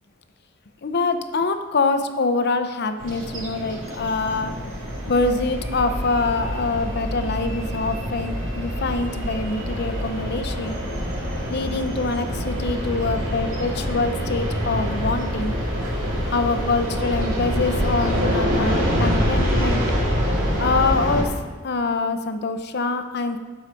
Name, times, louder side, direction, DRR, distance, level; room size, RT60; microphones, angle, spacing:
voice 1, 0.8-4.5 5.1-10.8 11.5-15.6 16.3-19.8 20.6-21.3 21.6-23.4, left 3 dB, 55° left, 8 dB, 0.7 m, -24 dB
sound 1, 3.0-21.2, equal, 75° right, 2.2 m, -25 dB
12.0 x 4.8 x 5.3 m, 1.5 s
head